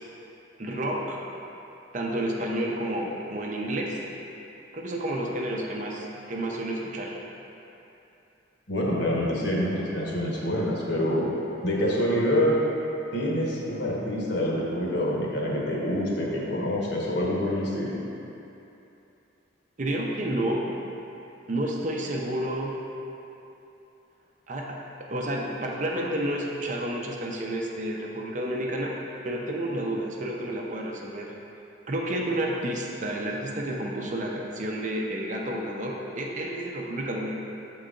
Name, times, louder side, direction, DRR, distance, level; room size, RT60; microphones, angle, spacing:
voice 1, 0.6-1.2 1.9-4.0 4.7-7.2 19.8-20.7 21.5-22.8 24.5-29.0 29.2-31.3 31.9-37.4, right 1 dB, 40° right, -1 dB, 0.5 m, -30 dB
voice 2, 8.7-11.3 11.6-12.5 13.1-18.0, left 1 dB, 55° left, -4 dB, 1.0 m, -26 dB
7.5 x 3.8 x 3.7 m, 2.9 s
head